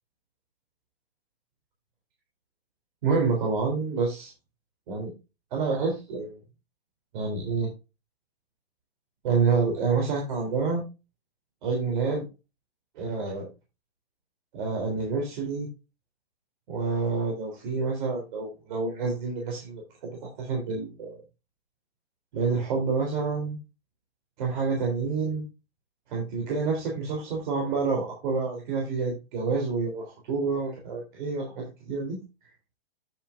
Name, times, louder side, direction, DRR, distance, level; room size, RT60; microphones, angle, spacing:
voice 1, 3.0-4.3 4.9-5.1 5.5-6.4 7.1-7.7 9.2-10.8 11.6-12.2 13.0-13.5 14.5-15.7 16.7-21.2 22.3-23.6 24.4-25.4 26.1-32.2, right 4 dB, 50° right, 0 dB, 3.4 m, -28 dB
9.3 x 7.9 x 2.5 m, 0.27 s
hypercardioid pair, 130°, 32 cm